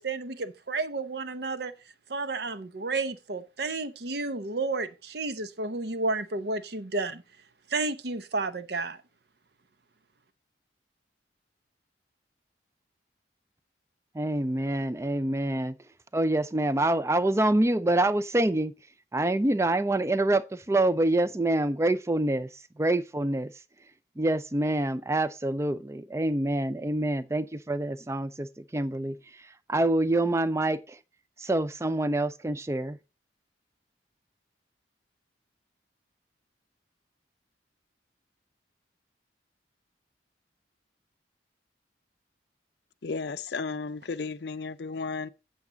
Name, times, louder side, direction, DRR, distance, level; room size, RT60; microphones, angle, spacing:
voice 1, 0.0-1.7 2.1-7.2 7.7-9.0, right 3 dB, 60° right, 0.8 m, -31 dB
voice 2, 14.1-15.8 16.1-18.7 19.1-23.5 24.2-31.0 31.4-33.0, right 1 dB, 15° right, 0.4 m, -26 dB
voice 3, 43.0-45.3, left 4 dB, 60° left, 0.5 m, -34 dB
8.5 x 7.8 x 4.0 m
head